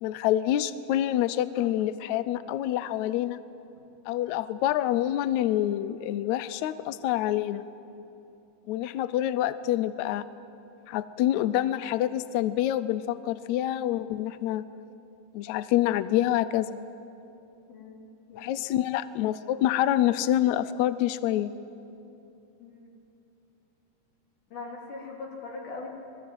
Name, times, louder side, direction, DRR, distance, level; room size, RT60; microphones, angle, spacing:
voice 1, 0.0-3.4 4.1-7.6 8.7-10.2 10.9-14.6 15.3-16.7 18.3-21.5, left 12 dB, 80° left, 14 dB, 1.7 m, -27 dB
voice 2, 17.7-18.0 18.3-18.5 22.6-22.9 24.5-25.9, left 3 dB, 65° left, -1 dB, 4.9 m, -40 dB
27.0 x 20.5 x 7.9 m, 2.8 s
omnidirectional pair, 4.0 m